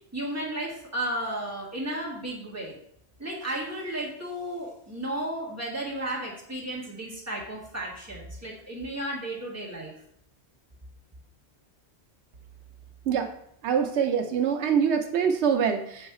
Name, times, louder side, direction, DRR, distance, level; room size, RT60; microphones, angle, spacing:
voice 1, 0.1-2.8 3.2-9.9, right 1 dB, 15° right, -4 dB, 1.6 m, -33 dB
voice 2, 13.6-16.1, right 7 dB, 85° right, 5 dB, 0.9 m, -24 dB
6.9 x 3.2 x 4.7 m, 0.71 s
omnidirectional pair, 1.1 m